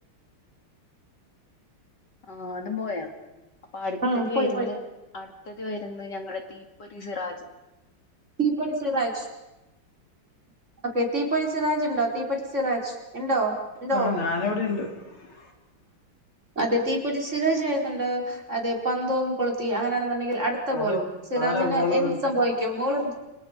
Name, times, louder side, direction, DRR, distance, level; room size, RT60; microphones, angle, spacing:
voice 1, 2.3-3.1 3.7-4.0 4.3-4.8 5.1-7.3, left 3 dB, 55° left, 4 dB, 2.8 m, -33 dB
voice 2, 4.0-4.7 8.4-9.3 10.9-13.5 13.8-14.1 16.6-21.0 21.3-23.1, right 1 dB, 30° right, 0 dB, 4.8 m, -26 dB
voice 3, 13.9-15.5 20.7-21.1 21.4-22.2, left 3 dB, 75° left, 2 dB, 4.1 m, -27 dB
29.5 x 26.5 x 5.2 m, 1.0 s
omnidirectional pair, 2.3 m